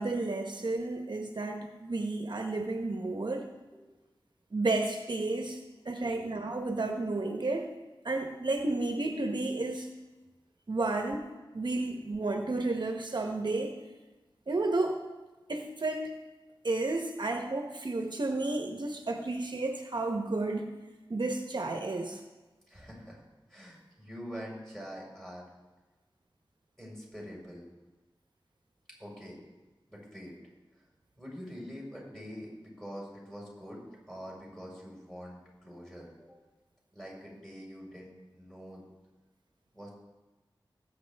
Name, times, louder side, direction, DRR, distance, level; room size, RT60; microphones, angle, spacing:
voice 1, 0.0-3.5 4.5-5.6 5.8-7.7 8.0-9.9 10.7-11.2 11.5-13.7 14.5-15.0 15.5-16.1 16.6-20.7 21.1-22.2, right 2 dB, 60° right, 4 dB, 1.0 m, -32 dB
voice 2, 6.0-6.3 11.9-12.0 22.7-23.2 23.5-25.4 26.8-27.7 29.0-29.4 29.9-30.4 31.2-36.4 36.9-38.8 39.7-40.0, equal, 5° left, -3 dB, 4.9 m, -45 dB
20.0 x 8.3 x 3.5 m, 1.2 s
wide cardioid pair, 80°, 9 cm